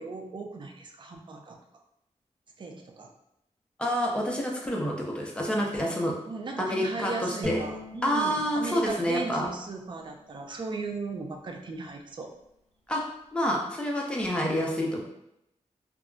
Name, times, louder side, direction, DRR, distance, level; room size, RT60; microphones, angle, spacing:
voice 1, 0.0-1.6 2.6-3.1 6.3-12.3, right 3 dB, 40° right, 3 dB, 0.4 m, -37 dB
voice 2, 3.8-6.1 6.6-7.6 8.0-9.5 12.9-13.0 13.3-15.0, equal, 10° left, -2 dB, 0.6 m, -28 dB
Bowed string instrument, 7.4-10.6, left 1 dB, 55° right, 1.0 m, -41 dB
2.3 x 2.1 x 3.7 m, 0.81 s
wide cardioid pair, 100°, 12 cm